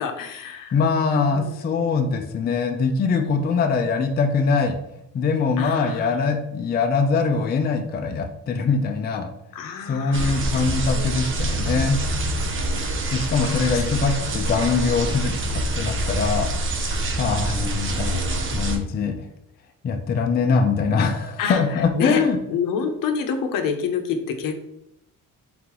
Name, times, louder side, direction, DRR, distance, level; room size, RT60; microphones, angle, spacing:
voice 1, 0.0-0.8 1.3-1.6 3.1-3.6 5.6-6.3 9.5-11.1 11.5-13.8 21.4-22.2 22.5-24.6, left 6 dB, 70° left, 6 dB, 0.7 m, -29 dB
voice 2, 0.7-4.8 5.1-9.3 9.8-12.0 13.1-19.1 19.8-22.4, left 5 dB, 30° left, 5 dB, 0.4 m, -23 dB
sound 1, 10.1-18.8, right 1 dB, 35° right, 0.6 m, -26 dB
3.8 x 3.7 x 3.0 m, 0.83 s
cardioid pair, 125°, 34 cm